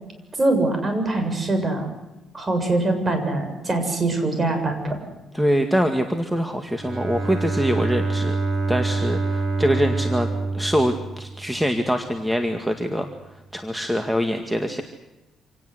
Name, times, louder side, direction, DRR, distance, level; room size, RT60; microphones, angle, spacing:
voice 1, 0.4-1.9 2.3-5.0, right 2 dB, 30° right, 6 dB, 7.0 m, -23 dB
voice 2, 5.3-8.4 8.7-10.3 10.5-13.1 13.5-14.8, equal, 5° right, 6 dB, 2.1 m, -24 dB
Bowed string instrument, 6.7-11.7, right 3 dB, 55° right, 5.8 m, -26 dB
27.0 x 18.0 x 8.1 m, 1.0 s
cardioid pair, 90°, 0 cm